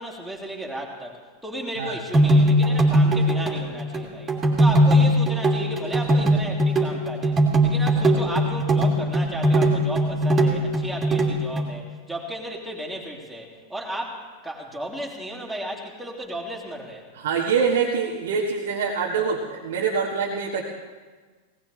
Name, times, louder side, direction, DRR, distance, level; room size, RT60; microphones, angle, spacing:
voice 1, 0.0-7.4 7.6-17.1, right 1 dB, 5° right, -3 dB, 3.1 m, -34 dB
sound 1, 2.1-11.7, right 1 dB, 20° right, 2.8 m, -20 dB
voice 2, 17.1-20.6, right 5 dB, 60° right, -2 dB, 1.7 m, -25 dB
19.0 x 19.0 x 3.4 m, 1.4 s
figure-of-eight pair, 90°, 0 cm